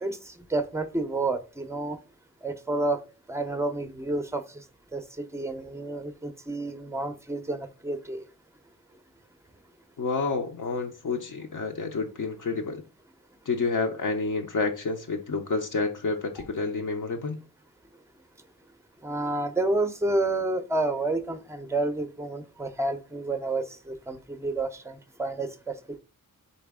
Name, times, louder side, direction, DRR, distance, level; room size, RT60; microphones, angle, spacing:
voice 1, 0.0-2.0 2.4-3.0 3.3-4.6 4.9-8.2 16.4-16.5 19.0-25.8, right 2 dB, 10° right, 0.5 m, -30 dB
voice 2, 10.0-12.8 13.5-17.4, left 4 dB, 65° left, 0.7 m, -29 dB
4.2 x 3.3 x 3.5 m
wide cardioid pair, 100°, 34 cm